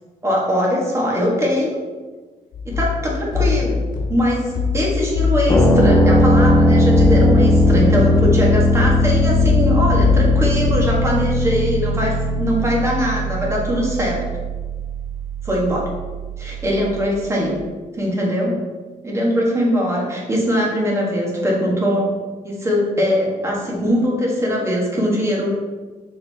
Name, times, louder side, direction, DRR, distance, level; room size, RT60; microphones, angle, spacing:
voice 1, 0.2-1.8 2.7-3.8 4.1-14.2 15.4-15.9 16.4-17.6 18.0-18.5 19.0-22.1 22.4-25.5, equal, 20° right, -3 dB, 1.6 m, -21 dB
sound 1, 2.5-11.0, left 5 dB, 75° left, 1.3 m, -22 dB
sound 2, 5.5-17.1, left 1 dB, 20° left, 1.1 m, -18 dB
6.3 x 4.6 x 3.5 m, 1.3 s
cardioid pair, 145°, 14 cm